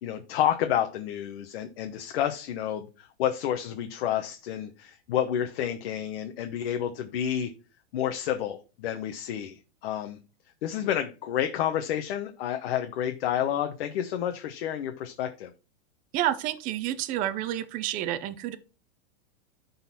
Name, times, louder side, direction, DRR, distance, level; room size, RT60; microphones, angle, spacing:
voice 1, 0.0-7.5 7.9-10.2 10.6-15.5, left 10 dB, 60° left, 1.0 m, -30 dB
voice 2, 16.1-18.6, right 12 dB, 25° right, 0.5 m, -29 dB
11.0 x 4.0 x 4.1 m
supercardioid pair, 150°, 33 cm